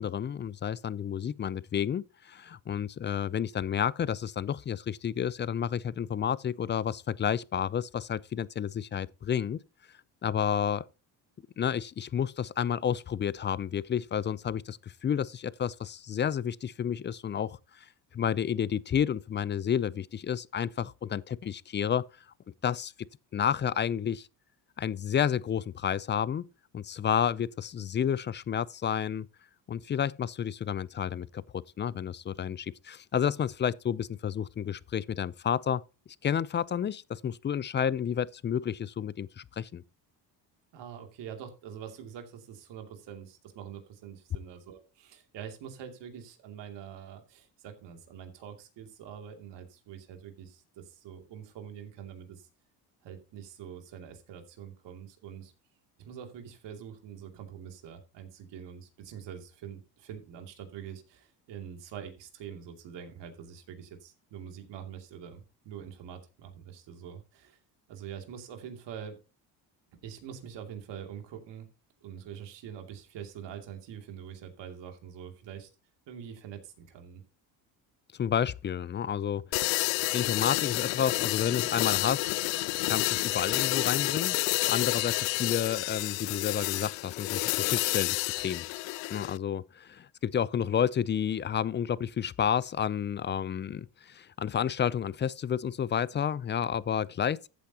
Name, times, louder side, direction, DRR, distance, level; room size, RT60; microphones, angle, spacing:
voice 1, 0.0-9.6 10.2-10.9 11.6-17.9 18.1-22.0 22.6-22.9 23.3-24.3 24.8-26.5 26.7-29.3 29.7-35.8 36.2-39.8 78.2-79.7 80.1-82.4 82.9-84.4 84.7-88.7 89.1-97.5, left 8 dB, 25° left, 0.4 m, -30 dB
voice 2, 40.7-52.5 53.0-55.5 56.0-67.6 67.9-69.2 70.0-71.7 72.0-75.7 76.1-77.2, right 8 dB, 75° right, 2.7 m, -45 dB
sound 1, 79.5-89.4, left 22 dB, 85° left, 0.6 m, -29 dB
14.0 x 8.3 x 2.9 m
cardioid pair, 100°, 43 cm